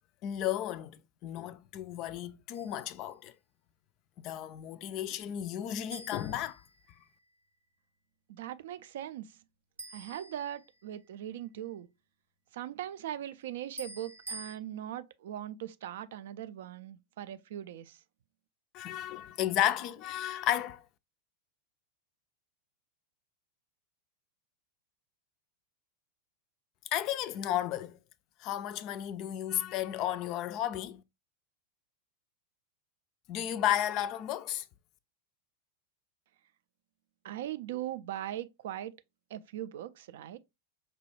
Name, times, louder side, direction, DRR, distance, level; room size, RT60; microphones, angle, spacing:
voice 1, 0.2-3.3 4.2-6.6 18.7-20.8 26.9-28.0 28.4-31.0 33.3-34.6, left 12 dB, 40° left, 0.3 m, -33 dB
sound 1, 2.5-3.0 5.9-7.3 9.8-11.1 13.8-14.6, right 2 dB, 80° right, 0.8 m, -47 dB
voice 2, 8.3-9.3 9.9-11.9 12.5-18.0 37.2-38.9 39.3-40.4, right 12 dB, 55° right, 0.3 m, -40 dB
5.0 x 2.2 x 3.1 m
figure-of-eight pair, 90°, 0 cm